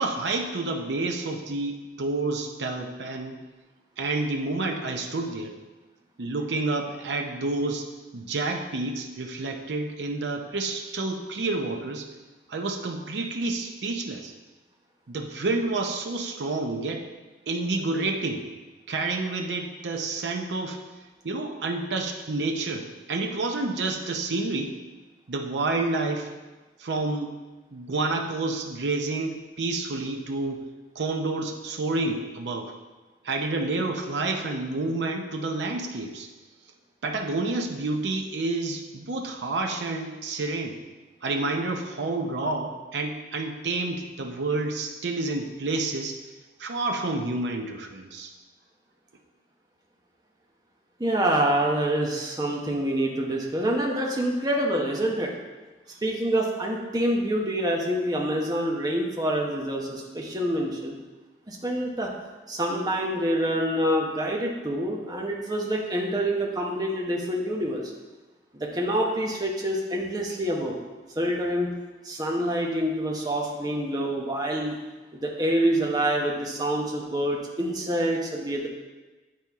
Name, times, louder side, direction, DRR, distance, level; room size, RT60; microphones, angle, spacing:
voice 1, 0.0-3.4 4.0-5.5 6.2-7.9 8.1-12.1 12.5-14.3 15.1-17.1 17.5-18.5 18.9-20.8 21.2-24.7 25.3-26.3 26.8-27.3 27.7-30.6 31.0-32.7 33.2-36.3 37.0-40.8 41.2-46.2 46.6-48.3, right 3 dB, 85° right, 3 dB, 0.7 m, -29 dB
voice 2, 51.0-55.3 56.0-61.0 61.5-62.1 62.5-67.8 68.5-70.8 71.2-71.7 72.0-74.8 75.1-78.7, right 1 dB, 20° right, -1 dB, 0.9 m, -26 dB
9.1 x 4.2 x 3.5 m, 1.2 s
head